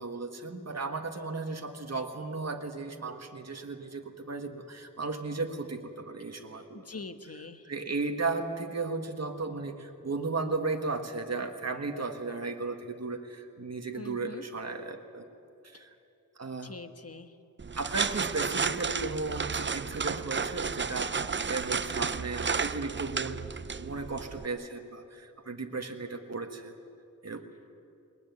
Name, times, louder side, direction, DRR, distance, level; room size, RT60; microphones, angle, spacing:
voice 1, 0.0-6.9 7.6-15.3 15.6-15.9 16.4-16.7 17.7-23.4 23.8-26.8 27.2-27.5, right 3 dB, 50° right, 4 dB, 1.7 m, -35 dB
voice 2, 6.7-7.7 13.9-14.4 16.6-17.3, left 3 dB, 45° left, 9 dB, 1.3 m, -43 dB
sound 1, 17.6-24.5, right 5 dB, 35° right, 0.5 m, -32 dB
21.0 x 21.0 x 9.5 m, 2.7 s
wide cardioid pair, 75°, 34 cm